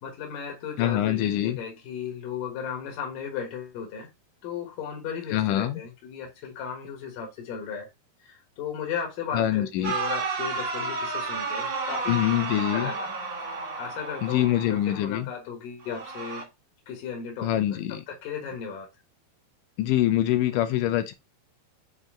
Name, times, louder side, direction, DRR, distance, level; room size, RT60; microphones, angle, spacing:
voice 1, 0.0-4.1 4.4-7.9 8.2-12.4 12.7-13.1 13.4-16.5 16.9-18.9, left 7 dB, 65° left, 3.0 m, -36 dB
voice 2, 0.8-1.6 5.3-5.8 9.3-9.9 12.1-12.9 14.2-15.3 17.4-18.0 19.8-21.1, left 13 dB, 85° left, 1.8 m, -24 dB
sound 1, 9.8-15.0 15.8-16.4, right 4 dB, 50° right, 2.6 m, -32 dB
7.4 x 4.1 x 3.8 m
omnidirectional pair, 4.5 m